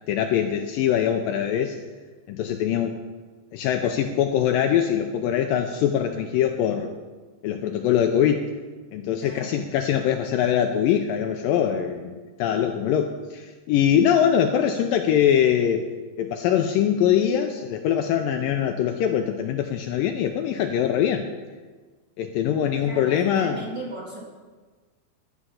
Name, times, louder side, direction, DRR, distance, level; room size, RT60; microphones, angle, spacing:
voice 1, 0.1-1.8 2.3-3.0 3.5-6.9 7.4-8.5 8.9-15.9 16.2-21.3 22.2-23.6, left 9 dB, 90° left, 5 dB, 2.0 m, -23 dB
voice 2, 9.2-9.6 22.8-24.2, right 1 dB, 25° right, -4 dB, 2.4 m, -36 dB
13.0 x 10.0 x 5.7 m, 1.4 s
omnidirectional pair, 4.6 m